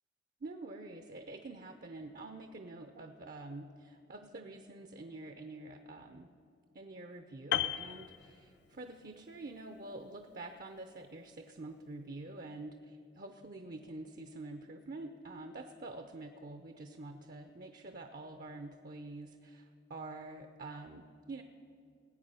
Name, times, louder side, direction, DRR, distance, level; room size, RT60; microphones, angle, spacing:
voice 1, 0.4-6.3 6.7-21.4, right 2 dB, 50° right, 6 dB, 0.6 m, -47 dB
Piano, 7.5-9.0 9.2-9.5, left 11 dB, 65° left, 0.4 m, -35 dB
19.0 x 8.7 x 5.6 m, 2.5 s
head